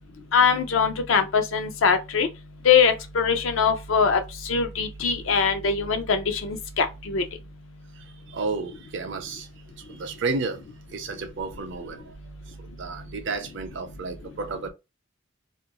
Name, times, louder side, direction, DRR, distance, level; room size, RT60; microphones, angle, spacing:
voice 1, 0.3-2.3 2.6-7.2, left 6 dB, 70° left, 0.5 m, -22 dB
voice 2, 8.3-9.5 9.8-10.6 10.9-12.1 12.8-14.7, right 4 dB, 60° right, 0.5 m, -32 dB
2.4 x 2.2 x 2.8 m
head